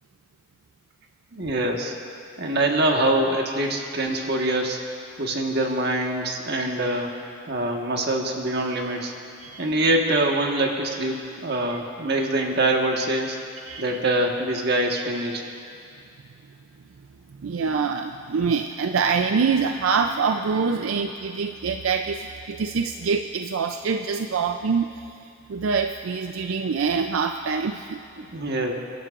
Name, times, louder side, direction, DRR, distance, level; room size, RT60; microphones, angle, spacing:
voice 1, 1.3-1.9 2.4-4.8 5.2-7.1 7.5-9.1 9.6-13.4 13.8-15.4 28.2-28.7, right 1 dB, 55° right, 1 dB, 1.4 m, -24 dB
voice 2, 13.7-14.0 17.4-25.0 25.5-28.0, right 5 dB, 85° right, 6 dB, 0.5 m, -25 dB
28.5 x 12.0 x 2.5 m, 2.4 s
head